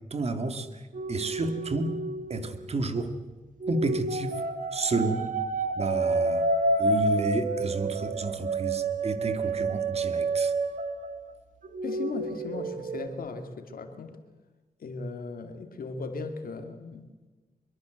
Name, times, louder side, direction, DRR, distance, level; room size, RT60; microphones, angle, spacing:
voice 1, 0.1-0.8 1.1-1.9 2.3-3.1 3.7-4.3 4.7-5.3 5.8-6.5 6.8-10.5, right 3 dB, 45° right, 9 dB, 2.1 m, -31 dB
sound 1, 0.9-3.0 3.6-11.3 11.6-13.1, right 3 dB, 65° right, 2.1 m, -29 dB
voice 2, 11.8-14.2 14.8-17.1, left 4 dB, 90° left, 7 dB, 2.4 m, -37 dB
24.0 x 23.0 x 7.9 m, 1.3 s
wide cardioid pair, 145°, 15 cm